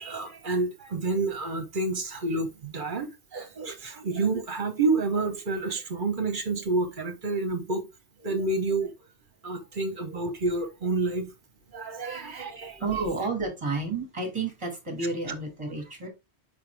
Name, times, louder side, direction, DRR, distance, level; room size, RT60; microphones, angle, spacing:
voice 1, 0.0-7.9 8.2-8.9 9.4-11.3 11.7-12.8, right 3 dB, 45° right, 1.3 m, -29 dB
voice 2, 12.8-16.1, right 3 dB, 25° right, 2.2 m, -31 dB
5.7 x 5.3 x 3.4 m
omnidirectional pair, 1.2 m